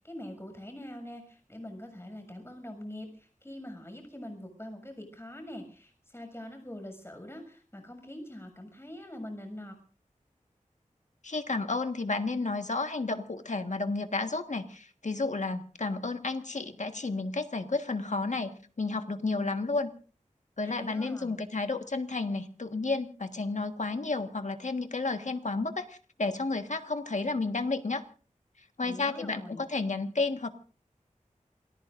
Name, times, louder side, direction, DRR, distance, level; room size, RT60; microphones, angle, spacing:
voice 1, 0.0-9.7 20.6-21.4 28.8-29.6, left 1 dB, 20° left, 5 dB, 6.8 m, -44 dB
voice 2, 11.2-19.9 20.6-28.0 28.8-30.5, left 3 dB, 65° left, 7 dB, 1.6 m, -32 dB
28.0 x 19.0 x 2.6 m, 0.40 s
wide cardioid pair, 60°, 14 cm